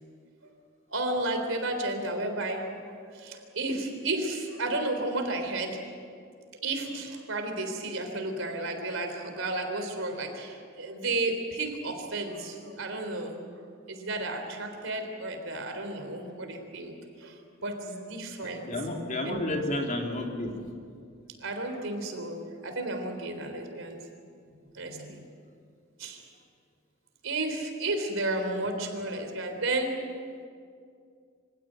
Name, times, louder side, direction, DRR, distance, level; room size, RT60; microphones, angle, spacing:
voice 1, 0.9-5.9 6.6-13.4 13.9-18.7 19.2-19.4 21.4-24.0 24.7-25.2 26.0-26.3 27.2-30.0, right 2 dB, 75° right, 5 dB, 3.8 m, -32 dB
voice 2, 18.4-20.6 24.7-24.8, left 1 dB, 40° left, 1 dB, 3.3 m, -31 dB
25.5 x 17.0 x 9.1 m, 2.3 s
head